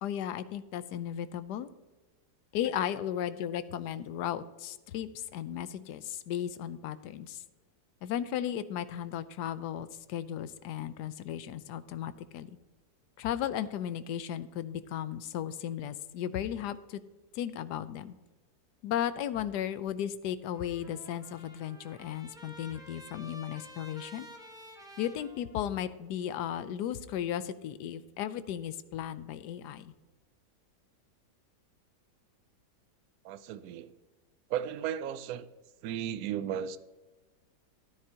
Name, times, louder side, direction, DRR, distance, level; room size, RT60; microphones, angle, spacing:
voice 1, 0.0-1.7 2.5-7.4 8.0-12.5 13.2-17.0 17.3-18.1 18.8-24.3 25.0-29.9, left 10 dB, 80° left, 14 dB, 1.2 m, -35 dB
Trumpet, 20.4-26.0, equal, ahead, 1.2 m, -51 dB
voice 2, 33.2-33.9 34.5-35.5 35.8-36.8, right 9 dB, 70° right, 14 dB, 1.0 m, -35 dB
13.5 x 9.6 x 2.8 m, 1.2 s
omnidirectional pair, 1.8 m